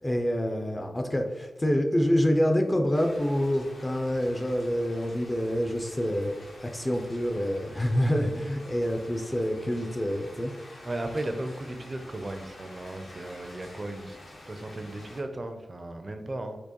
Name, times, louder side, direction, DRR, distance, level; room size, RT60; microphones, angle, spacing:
voice 1, 0.0-6.3 6.6-10.5, equal, 20° left, 3 dB, 0.4 m, -27 dB
sound 1, 2.9-15.2, left 1 dB, 80° left, 1.2 m, -48 dB
voice 2, 10.8-14.2 14.5-16.6, right 1 dB, 35° right, 7 dB, 0.4 m, -35 dB
4.4 x 2.5 x 2.9 m, 1.2 s
wide cardioid pair, 80°, 0 cm